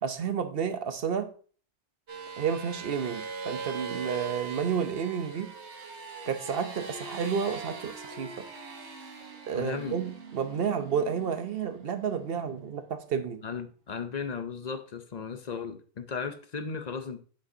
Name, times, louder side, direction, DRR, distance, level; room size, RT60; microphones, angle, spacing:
voice 1, 0.0-1.3 2.4-5.5 6.2-8.3 9.5-13.4, right 7 dB, 60° right, 0.9 m, -31 dB
sound 1, 2.1-12.9, right 4 dB, 75° right, 1.5 m, -41 dB
voice 2, 9.5-10.0 13.4-17.2, left 5 dB, 45° left, 0.7 m, -36 dB
7.7 x 6.3 x 2.7 m
omnidirectional pair, 1.2 m